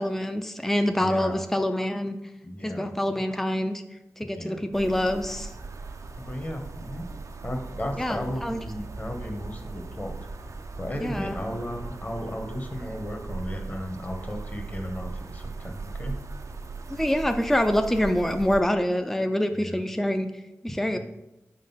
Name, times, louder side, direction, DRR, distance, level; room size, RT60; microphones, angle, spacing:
voice 1, 0.0-2.2 2.6-3.8 4.2-5.5 8.0-8.6 11.0-11.4 16.9-20.3 20.6-21.0, left 1 dB, 5° left, 7 dB, 0.5 m, -26 dB
voice 2, 1.0-1.4 2.4-3.3 4.2-4.6 6.2-7.0 7.4-10.1 10.8-16.2 19.6-19.8 20.8-21.0, equal, 30° left, 3 dB, 1.1 m, -35 dB
sound 1, 4.7-18.6, right 3 dB, 65° right, 0.5 m, -38 dB
5.1 x 3.8 x 5.6 m, 0.91 s
cardioid pair, 55°, 6 cm